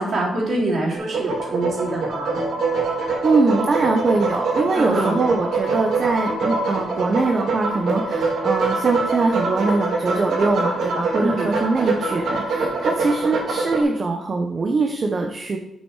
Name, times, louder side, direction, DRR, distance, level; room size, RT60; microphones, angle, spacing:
voice 1, 0.0-2.4 4.7-5.2 11.2-11.5, right 2 dB, 50° right, -4 dB, 3.5 m, -25 dB
sound 1, 0.9-13.8, right 3 dB, 75° right, 2.4 m, -24 dB
voice 2, 3.2-15.6, right 3 dB, 35° right, 3 dB, 0.8 m, -22 dB
8.8 x 7.3 x 4.7 m, 0.88 s
wide cardioid pair, 150°, 0 cm